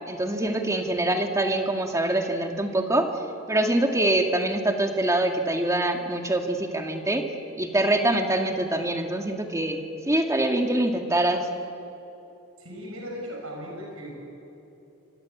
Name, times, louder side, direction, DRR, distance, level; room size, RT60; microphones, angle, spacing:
voice 1, 0.1-3.1 3.5-7.2 7.6-9.8 10.1-11.5, right 1 dB, 15° right, 4 dB, 2.0 m, -24 dB
voice 2, 12.6-14.2, equal, 80° right, 0 dB, 7.2 m, -37 dB
26.5 x 24.5 x 8.4 m, 3.0 s
head